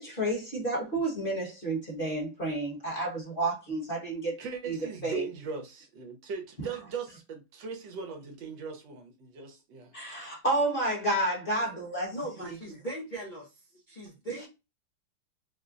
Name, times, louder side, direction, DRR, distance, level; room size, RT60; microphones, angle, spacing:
voice 1, 0.0-4.4 4.7-5.3 9.9-12.2 12.4-12.6, right 1 dB, 35° left, 1.2 m, -30 dB
voice 2, 4.4-9.9, right 6 dB, 75° right, 1.4 m, -39 dB
voice 3, 12.1-13.5 13.9-14.5, right 1 dB, 60° left, 0.4 m, -38 dB
4.2 x 2.1 x 2.4 m
omnidirectional pair, 2.1 m